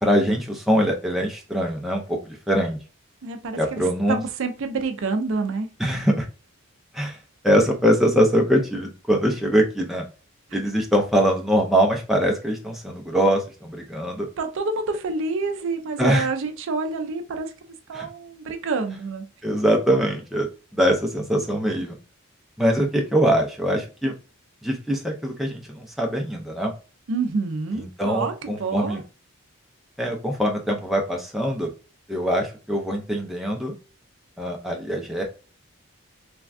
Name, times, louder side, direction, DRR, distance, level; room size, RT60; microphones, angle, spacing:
voice 1, 0.0-2.8 3.6-4.2 5.8-6.3 6.9-7.2 7.4-10.0 10.5-14.3 16.0-16.3 17.9-18.1 19.4-22.0 22.6-24.1 24.6-26.7 27.7-29.0 30.0-31.7 32.1-33.7 34.4-35.2, equal, ahead, 0 dB, 0.5 m, -23 dB
voice 2, 3.2-5.7 10.5-10.6 14.4-17.5 17.9-19.3 27.1-29.0, right 3 dB, 60° right, 6 dB, 0.4 m, -28 dB
3.3 x 2.3 x 2.3 m, 0.34 s
head